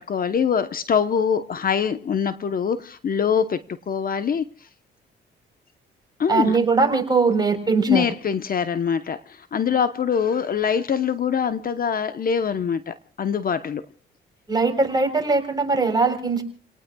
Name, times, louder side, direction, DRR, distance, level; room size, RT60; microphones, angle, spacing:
voice 1, 0.0-4.4 6.2-6.6 7.9-13.8, left 7 dB, 45° left, 0.9 m, -23 dB
voice 2, 6.3-8.0 14.5-16.4, right 4 dB, 20° right, 4.0 m, -20 dB
30.0 x 18.5 x 2.3 m
cardioid pair, 90°, 20 cm